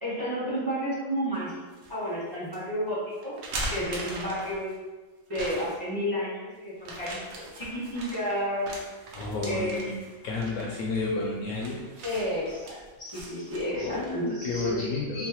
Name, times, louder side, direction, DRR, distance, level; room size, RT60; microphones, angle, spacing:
voice 1, 0.0-1.6 1.9-3.4 3.7-4.7 5.3-8.7 9.4-9.9 12.0-15.3, equal, 15° right, -10 dB, 0.9 m, -31 dB
sound 1, 1.3-1.9 2.5-2.6 3.2-4.8 5.3-5.9 6.8-14.3, right 1 dB, 65° right, 0.7 m, -40 dB
voice 2, 9.1-10.0 10.2-11.8 13.7-15.3, left 3 dB, 70° left, -2 dB, 0.9 m, -31 dB
4.0 x 2.1 x 2.9 m, 1.3 s
omnidirectional pair, 1.7 m